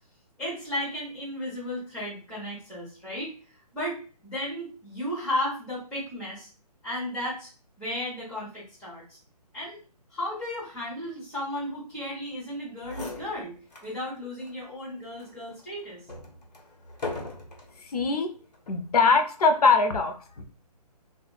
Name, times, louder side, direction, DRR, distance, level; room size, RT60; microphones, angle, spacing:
voice 1, 0.4-6.5 6.8-7.5 7.8-9.2 9.5-9.8 10.1-13.5 13.8-16.0, left 1 dB, 5° left, -10 dB, 1.0 m, -34 dB
sound 1, 12.5-12.6 12.8-14.0 14.4-14.5 15.2-17.8 18.5-18.9, left 3 dB, 85° left, 1.3 m, -39 dB
voice 2, 17.8-18.3 18.7-20.4, left 4 dB, 65° left, 7 dB, 0.7 m, -22 dB
4.3 x 2.4 x 2.3 m, 0.37 s
hypercardioid pair, 170°, 21 cm